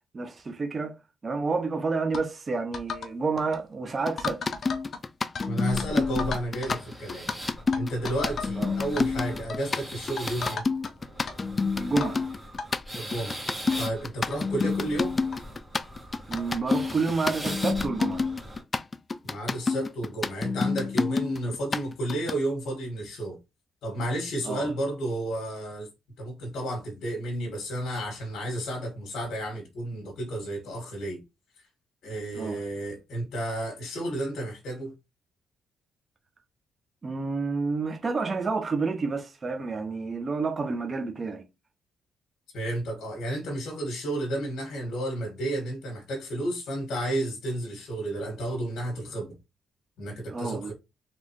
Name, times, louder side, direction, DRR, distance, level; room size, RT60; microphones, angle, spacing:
voice 1, 0.1-1.0 1.2-4.4 8.6-8.8 11.7-12.3 16.3-18.2 24.5-24.7 32.3-32.6 37.0-41.4 50.3-50.7, right 4 dB, 30° right, 0.7 m, -29 dB
sound 1, 2.1-2.3 2.7-3.1 3.4-3.6 4.2-5.5 5.8-5.9 6.2-6.9 7.3-7.4 7.7-8.5 8.8-9.0 9.5-9.7 10.2-10.9 11.3-11.4 12.0-12.2 12.6-12.7 13.4-13.5 13.7-13.8 14.3-14.4 15.3-15.4 16.3-16.5, left 5 dB, 50° left, 0.8 m, -35 dB
sound 2, 4.1-22.4, left 4 dB, 25° left, 0.3 m, -28 dB
voice 2, 5.5-7.3 7.7-10.6 12.9-13.4 13.8-15.2 19.2-23.4 23.8-25.9 26.2-31.2 32.0-34.9 42.5-49.3 50.0-50.7, right 1 dB, 75° left, 1.8 m, -32 dB
sound 3, 5.7-18.6, equal, 5° right, 1.9 m, -41 dB
4.2 x 3.2 x 3.1 m
cardioid pair, 120°, 0 cm